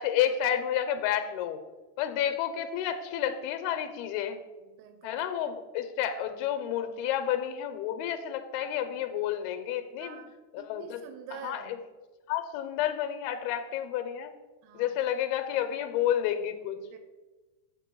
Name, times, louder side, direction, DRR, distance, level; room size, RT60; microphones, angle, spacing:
voice 1, 0.0-1.6 2.0-4.4 5.0-10.2 10.5-11.0 11.4-11.8 12.3-14.3 14.7-16.8, left 10 dB, 90° left, 9 dB, 2.5 m, -30 dB
voice 2, 4.8-5.2 5.4-5.5 10.0-10.3 10.6-11.8 14.6-15.0 16.9-17.0, right 8 dB, 85° right, 6 dB, 2.5 m, -46 dB
6.7 x 5.6 x 4.5 m, 1.2 s
omnidirectional pair, 4.3 m